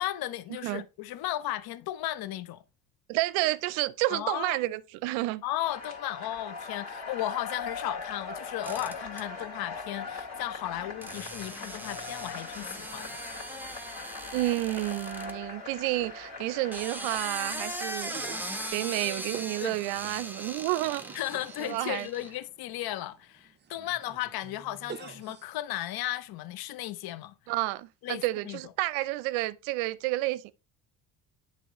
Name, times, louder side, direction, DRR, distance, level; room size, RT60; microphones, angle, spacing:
voice 1, 0.0-2.6 4.1-4.6 5.4-13.2 19.6-19.8 21.1-27.3 28.0-28.6, left 14 dB, 50° left, 0.7 m, -35 dB
voice 2, 3.1-5.4 14.3-18.1 18.7-21.0 21.6-22.1 27.5-30.5, right 18 dB, 70° right, 0.6 m, -30 dB
sound 1, 5.6-18.7, left 4 dB, 30° left, 2.5 m, -41 dB
sound 2, 8.6-9.2 11.0-15.3 16.5-22.3, right 1 dB, 5° right, 1.0 m, -39 dB
sound 3, 18.1-25.5, right 7 dB, 20° right, 0.6 m, -48 dB
10.0 x 3.5 x 2.9 m
hypercardioid pair, 60°, 49 cm